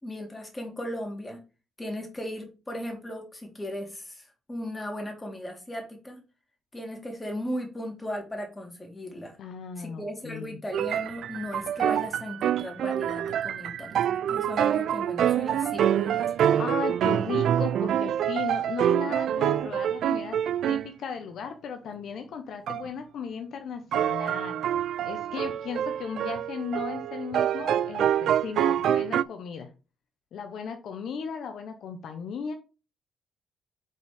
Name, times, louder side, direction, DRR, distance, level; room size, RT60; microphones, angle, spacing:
voice 1, 0.0-1.4 1.8-6.2 6.7-9.4 9.8-16.6, left 1 dB, 15° left, 2 dB, 2.4 m, -37 dB
voice 2, 9.4-10.6 16.6-20.4 20.6-24.6 25.0-29.7 30.3-32.5, left 6 dB, 70° left, 6 dB, 0.9 m, -36 dB
sound 1, 10.7-20.9 22.7-22.9 23.9-29.2, right 10 dB, 70° right, 0.3 m, -26 dB
5.4 x 4.1 x 5.0 m, 0.32 s
cardioid pair, 90°, 0 cm